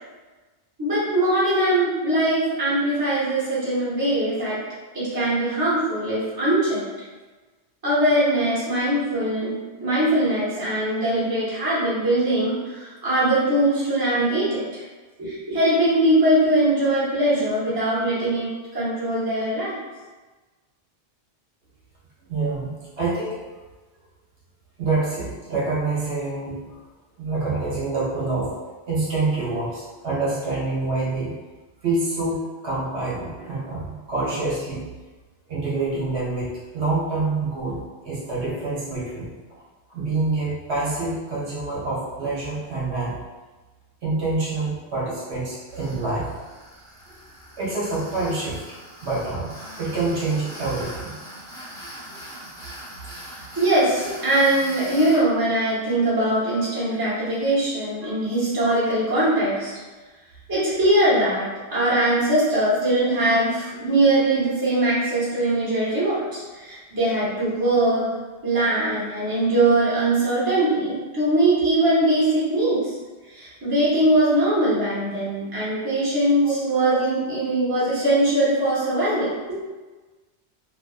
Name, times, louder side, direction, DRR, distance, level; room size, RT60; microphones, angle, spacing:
voice 1, 0.8-4.6 4.9-6.9 7.8-14.8 15.2-19.8 53.6-59.7 60.5-68.1 68.4-72.9 73.3-79.3, right 1 dB, 20° right, -10 dB, 0.8 m, -21 dB
voice 2, 22.3-23.4 24.8-26.7 27.2-28.5 28.9-31.3 31.8-32.4 32.6-34.8 35.5-39.3 39.9-43.1 44.0-46.3 47.6-48.6 49.0-51.1 76.4-76.5, right 3 dB, 70° right, -7 dB, 1.0 m, -26 dB
Tools, 45.7-55.2, equal, 5° left, 0.5 m, -41 dB
2.5 x 2.2 x 2.3 m, 1.3 s
omnidirectional pair, 1.2 m